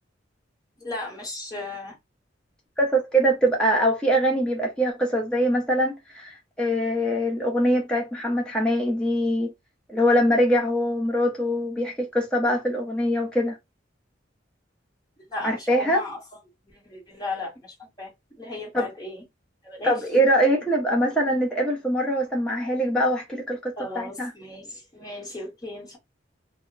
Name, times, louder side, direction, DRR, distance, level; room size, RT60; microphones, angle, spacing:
voice 1, 0.8-2.0 15.3-16.2 16.7-19.2 19.6-20.0 23.8-26.0, left 2 dB, 20° left, 1.2 m, -36 dB
voice 2, 2.8-9.5 9.9-13.6 15.4-16.0 18.7-18.9 19.8-24.3, equal, 5° left, 0.6 m, -23 dB
2.2 x 2.1 x 3.6 m
head